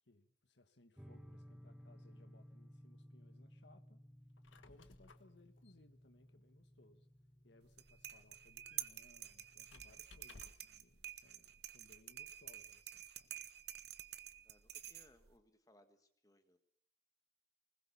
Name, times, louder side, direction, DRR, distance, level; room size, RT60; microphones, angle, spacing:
voice 1, 0.0-4.0 4.6-7.1 7.4-13.4, left 2 dB, 65° left, 1.5 m, -67 dB
sound 1, 1.0-9.9, equal, 5° right, 0.8 m, -60 dB
Squeak, 4.2-10.8, left 3 dB, 85° left, 1.3 m, -64 dB
sound 2, 7.6-15.4, right 12 dB, 55° right, 1.0 m, -50 dB
voice 2, 14.4-16.6, left 1 dB, 20° left, 1.5 m, -68 dB
20.5 x 20.0 x 7.0 m
head